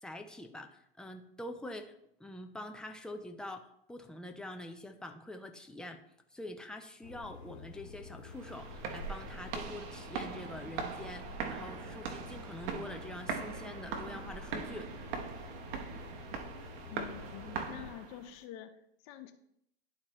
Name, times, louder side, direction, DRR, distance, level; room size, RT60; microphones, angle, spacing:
voice 1, 0.0-6.0 6.3-15.0, left 1 dB, ahead, 5 dB, 0.5 m, -45 dB
sound 1, 7.0-17.9, left 3 dB, 80° left, 1.4 m, -49 dB
sound 2, 8.3-18.3, right 5 dB, 55° right, 1.0 m, -41 dB
voice 2, 16.9-18.7 19.0-19.3, left 11 dB, 45° left, 9 dB, 0.8 m, -46 dB
11.5 x 4.3 x 3.0 m, 0.74 s
hypercardioid pair, 125°, 32 cm